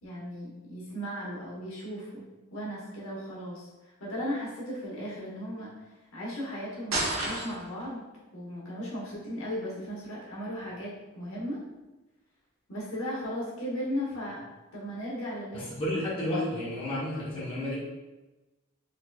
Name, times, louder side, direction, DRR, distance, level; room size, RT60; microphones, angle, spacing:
voice 1, 0.0-2.2 2.5-5.7 6.1-8.0 8.3-11.6 12.7-14.4 14.7-15.7, equal, 85° left, -5 dB, 1.2 m, -36 dB
sound 1, 6.9-7.9, right 2 dB, 70° right, 1.1 m, -30 dB
voice 2, 15.5-17.8, left 1 dB, 25° left, -8 dB, 1.0 m, -31 dB
4.0 x 3.2 x 2.3 m, 1.1 s
head